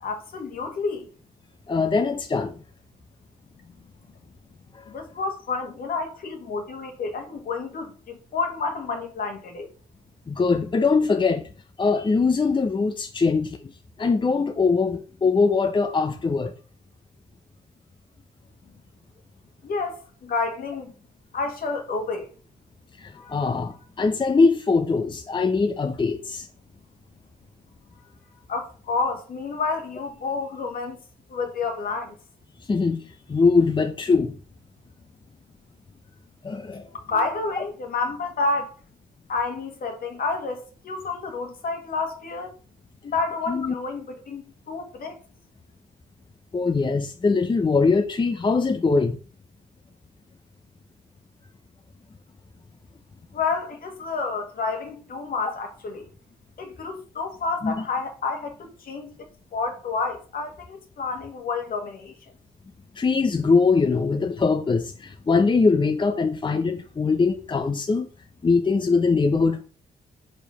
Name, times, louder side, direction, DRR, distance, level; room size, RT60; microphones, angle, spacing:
voice 1, 0.0-1.1 3.6-3.7 4.9-9.7 19.6-20.9 21.3-22.3 23.1-23.4 28.5-31.0 31.3-32.2 37.1-38.7 39.3-42.6 43.0-45.2 53.3-56.1 56.6-59.1 59.5-62.1, left 4 dB, 60° left, 1.8 m, -29 dB
voice 2, 1.7-2.5 10.3-11.5 11.8-13.7 14.0-16.5 23.0-26.5 32.7-33.0 33.3-34.4 36.4-36.9 43.5-43.7 46.5-49.2 57.6-57.8 63.0-68.1 68.4-69.6, left 4 dB, 30° left, 0.7 m, -22 dB
5.2 x 4.5 x 5.6 m
supercardioid pair, 65°, 16 cm